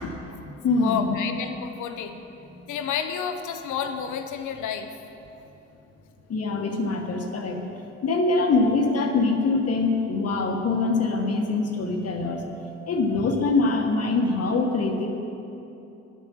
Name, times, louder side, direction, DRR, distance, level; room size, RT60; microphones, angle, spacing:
voice 1, 0.0-1.2 2.5-2.6 6.3-7.6 8.0-12.4 12.9-15.1, left 3 dB, 55° left, 3 dB, 1.4 m, -24 dB
voice 2, 0.7-2.1 2.7-4.9, left 8 dB, 80° left, 7 dB, 0.9 m, -30 dB
9.8 x 9.5 x 6.3 m, 2.9 s
cardioid pair, 90°, 30 cm